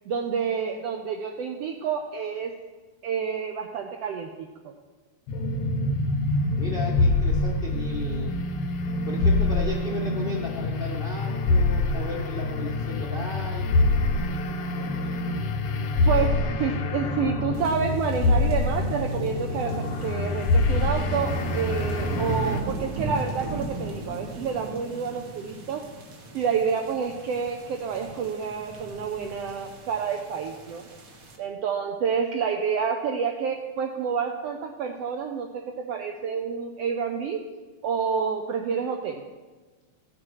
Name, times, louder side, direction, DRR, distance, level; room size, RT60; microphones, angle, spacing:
voice 1, 0.1-2.5 3.0-4.7 16.1-25.8 26.3-30.9 31.4-37.4 37.8-39.2, right 6 dB, 75° right, 3 dB, 1.5 m, -29 dB
sound 1, 5.3-22.6, left 2 dB, 75° left, 1.3 m, -25 dB
voice 2, 6.6-8.4 9.1-13.8, left 3 dB, 40° left, -4 dB, 0.7 m, -35 dB
sound 2, 17.5-31.4, right 1 dB, 60° right, 0.9 m, -37 dB
15.0 x 7.5 x 4.7 m, 1.3 s
omnidirectional pair, 3.5 m